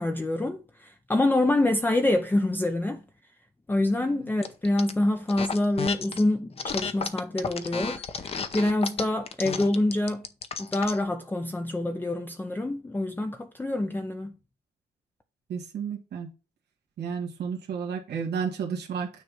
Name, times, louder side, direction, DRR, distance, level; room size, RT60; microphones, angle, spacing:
voice 1, 0.0-3.0 3.7-10.3 10.6-14.3, left 1 dB, 10° left, 0.5 m, -26 dB
sound 1, 4.4-4.9 5.3-6.2 6.6-11.0, left 5 dB, 35° left, 0.8 m, -32 dB
voice 2, 15.5-16.3 17.0-19.1, right 6 dB, 75° right, 2.1 m, -32 dB
9.4 x 3.3 x 6.3 m
wide cardioid pair, 145°, 17 cm